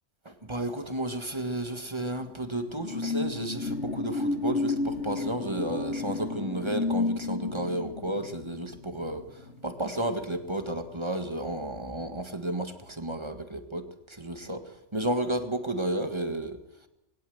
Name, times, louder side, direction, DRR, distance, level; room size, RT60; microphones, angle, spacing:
voice 1, 0.2-16.6, right 1 dB, 25° right, 7 dB, 1.7 m, -32 dB
sound 1, 1.9-10.9 11.3-11.5, left 3 dB, 65° left, 2.0 m, -32 dB
21.0 x 17.5 x 7.8 m, 0.89 s
omnidirectional pair, 1.3 m